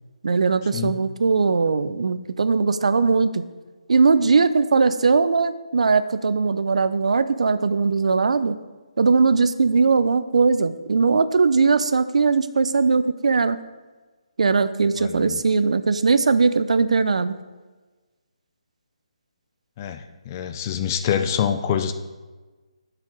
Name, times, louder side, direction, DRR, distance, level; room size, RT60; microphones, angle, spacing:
voice 1, 0.2-3.4 3.9-8.6 9.0-13.6 14.4-17.3, right 4 dB, 70° right, 13 dB, 0.5 m, -20 dB
voice 2, 15.0-15.4 19.8-21.9, left 8 dB, 25° left, 9 dB, 0.5 m, -26 dB
12.0 x 4.9 x 4.5 m, 1.3 s
hypercardioid pair, 160°, 4 cm